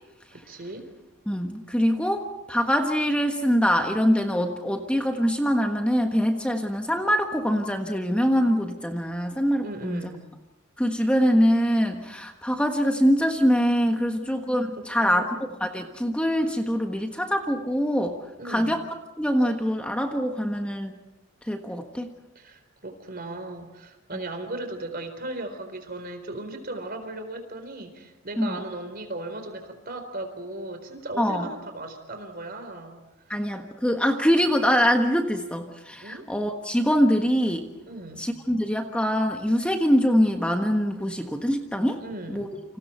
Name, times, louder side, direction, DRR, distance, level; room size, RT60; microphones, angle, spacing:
voice 1, 0.3-0.9 9.6-10.2 14.0-14.3 14.8-15.3 18.4-18.8 22.4-33.1 36.0-36.3 37.9-38.3 42.0-42.5, right 2 dB, 45° right, 7 dB, 4.1 m, -37 dB
voice 2, 1.3-10.1 10.8-15.2 15.6-18.2 18.4-18.8 19.2-20.9 21.5-22.1 28.4-28.6 31.2-31.5 33.3-37.7 38.2-42.0 42.3-42.5, equal, 5° left, 3 dB, 1.4 m, -24 dB
29.5 x 27.0 x 4.5 m, 0.98 s
head